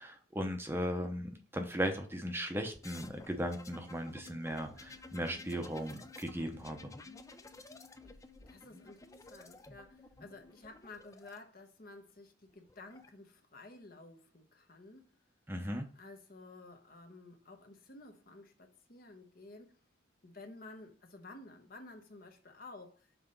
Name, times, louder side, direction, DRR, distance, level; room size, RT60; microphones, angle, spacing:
voice 1, 0.0-6.9 15.5-15.9, equal, 10° right, 0.8 m, -37 dB
sound 1, 2.8-11.4 12.5-13.1, left 3 dB, 15° left, 0.5 m, -53 dB
voice 2, 8.5-15.0 15.9-19.8 20.2-23.1, left 2 dB, 45° left, 1.0 m, -53 dB
5.9 x 4.2 x 5.3 m
head